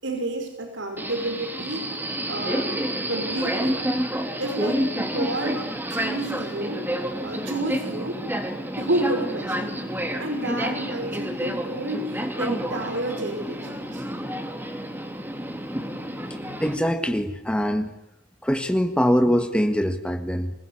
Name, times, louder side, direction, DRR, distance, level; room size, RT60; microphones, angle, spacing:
voice 1, 0.0-1.9 2.3-2.8 3.1-3.8 4.4-6.9 7.2-8.2 8.8-14.0, right 1 dB, 80° right, 5 dB, 5.8 m, -30 dB
Subway metro underground, 1.0-16.7, equal, 10° right, 3.3 m, -29 dB
voice 2, 16.6-17.9 18.4-20.5, equal, 5° left, 7 dB, 1.6 m, -23 dB
27.5 x 20.5 x 9.9 m, 0.91 s
head